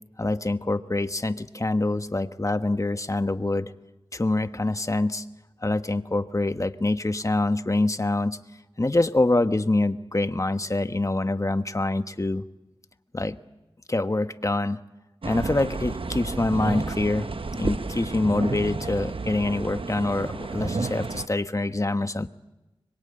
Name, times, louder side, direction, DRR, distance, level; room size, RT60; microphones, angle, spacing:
voice 1, 0.2-3.7 4.1-5.2 5.6-8.4 8.8-12.4 13.1-13.4 13.9-14.8 15.2-22.3, left 2 dB, 35° left, 10 dB, 1.2 m, -25 dB
sound 1, 15.2-21.3, right 3 dB, 65° right, 1.0 m, -31 dB
25.0 x 22.5 x 8.8 m, 1.0 s
wide cardioid pair, 45°, 10 cm